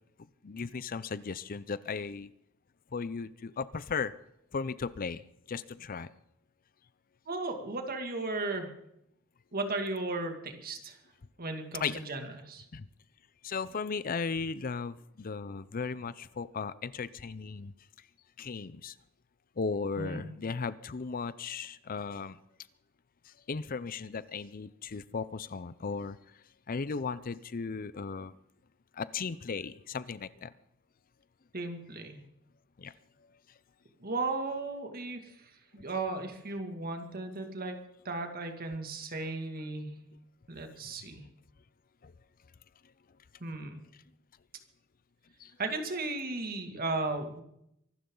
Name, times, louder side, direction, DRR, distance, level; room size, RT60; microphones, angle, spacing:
voice 1, 0.4-2.3 2.9-4.1 4.5-5.2 5.5-6.1 11.8-12.0 12.7-12.9 13.4-17.7 18.4-18.9 19.6-22.4 23.3-26.2 26.7-28.4 28.9-30.5 32.8-32.9 42.0-42.1 45.4-45.5, left 5 dB, 45° left, 0.5 m, -36 dB
voice 2, 7.3-8.7 9.5-11.0 11.4-12.7 20.0-20.3 31.5-32.2 34.0-37.8 38.0-40.0 40.5-41.3 43.4-43.8 45.6-47.4, right 3 dB, 50° right, 2.3 m, -35 dB
24.5 x 12.5 x 3.9 m
head